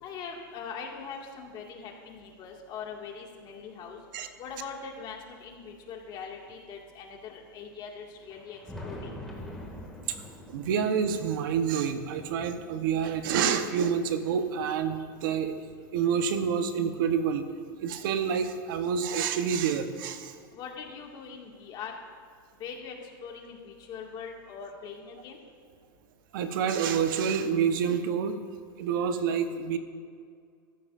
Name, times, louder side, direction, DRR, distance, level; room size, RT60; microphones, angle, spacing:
voice 1, 0.0-9.1 20.5-21.9 22.6-25.4, left 6 dB, 40° left, 1 dB, 2.0 m, -42 dB
Thunder, 8.1-16.7 17.4-19.1 20.2-20.3 20.9-21.0 22.8-22.9 24.3-24.4 26.0-26.1, left 1 dB, 5° left, 2.1 m, -47 dB
voice 2, 10.5-15.5 15.9-17.4 17.8-20.4 26.3-28.4 28.8-29.8, right 7 dB, 70° right, 8 dB, 1.0 m, -28 dB
16.5 x 14.0 x 2.5 m, 2.1 s
supercardioid pair, 130°, 12 cm